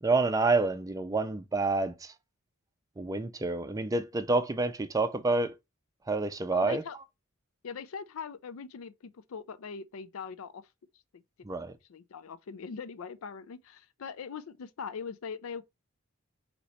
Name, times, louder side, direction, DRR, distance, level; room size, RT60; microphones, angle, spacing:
voice 1, 0.0-2.1 3.0-5.5 6.1-6.8 11.4-11.7, right 3 dB, 15° right, 0.4 m, -28 dB
voice 2, 6.5-7.0 7.6-10.6 11.1-11.2 11.9-15.6, left 6 dB, 80° left, 0.4 m, -41 dB
4.3 x 2.9 x 4.1 m
head